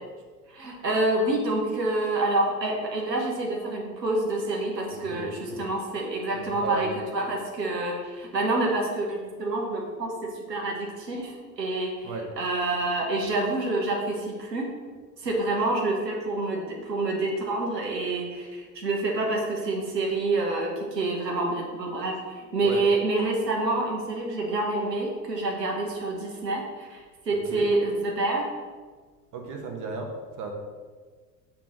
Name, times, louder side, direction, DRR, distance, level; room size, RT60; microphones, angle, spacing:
voice 1, 0.5-14.7 15.2-28.5, right 2 dB, 80° right, 0 dB, 1.4 m, -27 dB
voice 2, 4.9-5.6 6.3-6.9 12.0-12.3 22.6-22.9 27.3-27.7 29.3-30.1 30.4-30.5, right 4 dB, 40° right, 2 dB, 1.5 m, -35 dB
7.3 x 4.2 x 6.4 m, 1.5 s
figure-of-eight pair, 70°, 49 cm